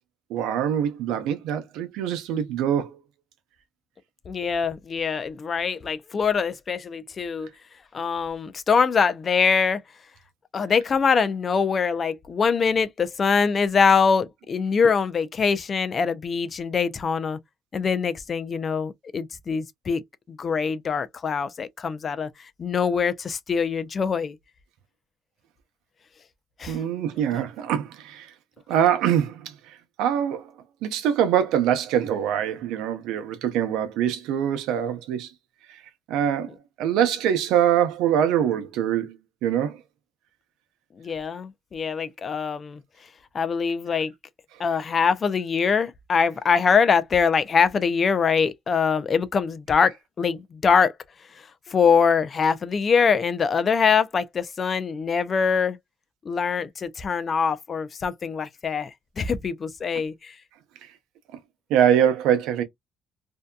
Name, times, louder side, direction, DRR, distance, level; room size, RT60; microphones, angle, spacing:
voice 1, 0.3-3.0 26.7-28.3 28.7-29.5 30.0-30.5 30.8-35.3 36.1-36.5 36.8-39.2 39.4-39.8 61.7-62.6, right 9 dB, 90° right, 0.6 m, -23 dB
voice 2, 4.3-7.5 7.9-9.8 10.5-17.4 17.7-20.0 20.3-24.4 26.6-26.8 41.0-42.8 43.3-44.1 44.6-50.9 51.7-55.8 56.3-58.9 59.2-60.4, left 6 dB, 40° left, 0.4 m, -23 dB
2.7 x 2.2 x 2.2 m
cardioid pair, 90°, 0 cm